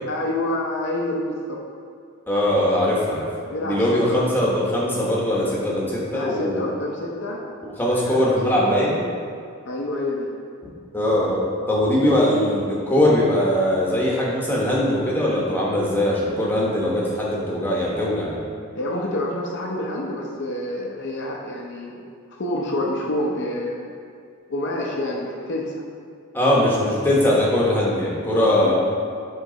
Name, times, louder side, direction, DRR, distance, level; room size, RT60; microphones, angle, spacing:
voice 1, 0.1-1.6 3.5-3.8 4.1-4.2 6.1-7.4 7.9-8.8 9.6-10.3 12.0-12.2 18.8-22.0 22.4-23.9 24.5-25.7 28.4-28.7, left 1 dB, 50° left, -3 dB, 0.6 m, -27 dB
voice 2, 2.3-3.3 3.6-6.6 7.6-9.0 10.9-18.4 26.3-28.7, left 1 dB, 10° left, -5 dB, 0.9 m, -21 dB
8.1 x 3.3 x 3.8 m, 2.3 s
head